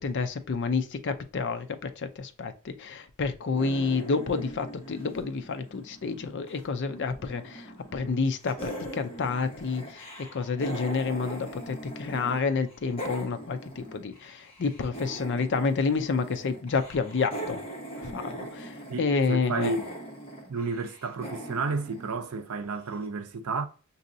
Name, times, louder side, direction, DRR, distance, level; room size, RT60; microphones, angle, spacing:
voice 1, 0.0-17.6 18.0-19.7, left 4 dB, 55° left, 0.5 m, -29 dB
sound 1, 3.5-6.6 6.9-8.1 8.4-12.4 12.7-22.7, right 1 dB, 25° left, 1.2 m, -41 dB
voice 2, 18.9-19.9 20.5-23.7, right 3 dB, 75° right, 0.6 m, -31 dB
6.1 x 2.7 x 2.6 m
head